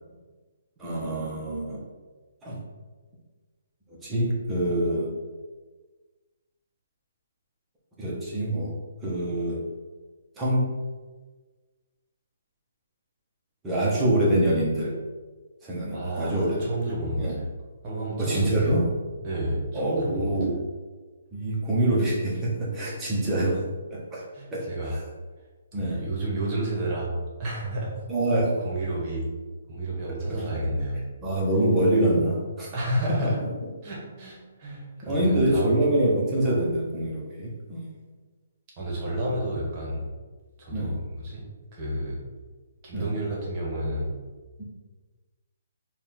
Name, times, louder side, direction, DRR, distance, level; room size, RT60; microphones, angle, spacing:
voice 1, 0.8-1.8 2.4-2.6 4.0-5.2 8.0-9.7 10.4-10.7 13.6-15.0 15.6-16.7 17.2-17.3 18.2-18.9 19.7-20.5 21.3-24.2 24.5-25.0 25.7-26.0 28.1-28.6 30.0-30.1 31.2-32.7 35.1-37.8 40.7-40.9 42.9-43.1 44.6-44.7, right 1 dB, 10° right, -6 dB, 0.8 m, -25 dB
voice 2, 15.9-17.4 17.8-18.8 19.2-20.3 24.3-25.0 25.7-27.1 27.4-27.9 28.6-29.3 29.7-31.0 32.7-33.4 33.8-35.7 38.8-40.1 40.6-41.4 41.7-42.2 42.8-44.2, right 1 dB, 25° right, -4 dB, 1.1 m, -30 dB
4.2 x 2.3 x 3.6 m, 1.4 s
hypercardioid pair, 165°, 0 cm